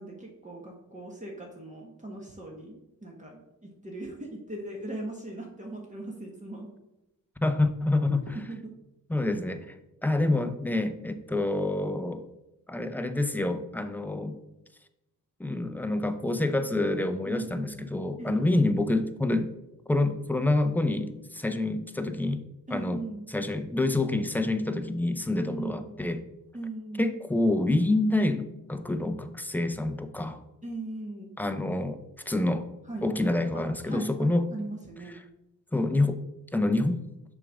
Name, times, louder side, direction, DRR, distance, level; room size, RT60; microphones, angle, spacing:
voice 1, 0.0-3.4 3.8-6.7 8.5-8.7 17.3-17.8 18.2-18.7 22.7-23.3 25.4-25.9 26.5-27.0 30.6-31.3 32.9-35.2, right 2 dB, 20° right, -2 dB, 1.3 m, -39 dB
voice 2, 7.4-8.4 9.1-9.7 10.0-12.2 12.7-14.4 15.4-19.5 19.9-22.4 22.7-23.0 23.3-26.2 27.0-30.4 31.4-32.0 32.3-32.7 33.0-34.5 35.1-35.2 35.7-36.2 36.5-37.0, left 2 dB, 5° left, 8 dB, 0.6 m, -27 dB
6.7 x 3.6 x 6.2 m, 0.91 s
cardioid pair, 95°, 34 cm